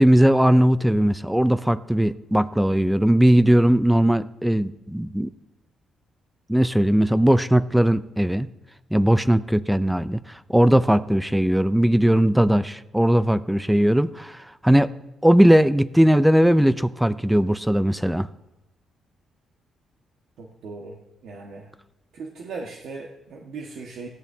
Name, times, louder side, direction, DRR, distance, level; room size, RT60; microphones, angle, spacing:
voice 1, 0.0-5.3 6.5-8.5 8.9-14.9 15.2-18.3, right 1 dB, 5° right, 14 dB, 0.5 m, -19 dB
voice 2, 20.4-21.0 21.2-21.7 22.1-24.1, right 4 dB, 75° right, -1 dB, 1.6 m, -38 dB
17.5 x 15.0 x 2.8 m, 0.97 s
cardioid pair, 90°, 0 cm